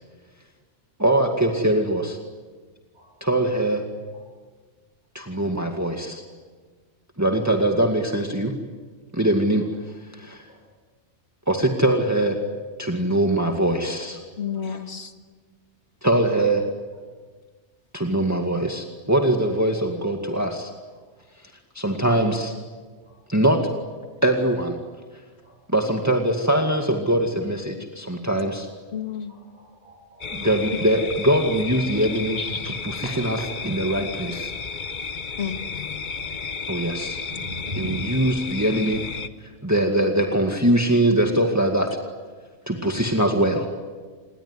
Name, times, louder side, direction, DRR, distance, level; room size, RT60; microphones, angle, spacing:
voice 1, 1.0-2.2 3.2-3.8 5.1-6.2 7.2-8.5 9.1-9.6 10.1-10.5 11.5-12.4 12.8-14.2 14.7-14.8 16.0-16.6 17.9-20.7 21.7-22.5 23.3-23.6 24.2-24.8 25.7-28.7 30.3-33.4 33.7-34.5 36.7-37.2 37.8-39.0 39.6-41.9 42.7-43.7, right 1 dB, 15° right, 2 dB, 2.1 m, -22 dB
voice 2, 14.4-15.1 28.9-29.3 32.4-32.8 35.4-36.0, left 7 dB, 65° left, 7 dB, 2.0 m, -31 dB
voice 3, 29.3-30.2 32.5-32.6 33.0-33.5 37.3-38.1, equal, 45° right, -3 dB, 7.6 m, -38 dB
sound 1, 30.2-39.3, left 5 dB, 45° left, 1.1 m, -33 dB
28.0 x 21.0 x 9.9 m, 1.4 s
omnidirectional pair, 1.2 m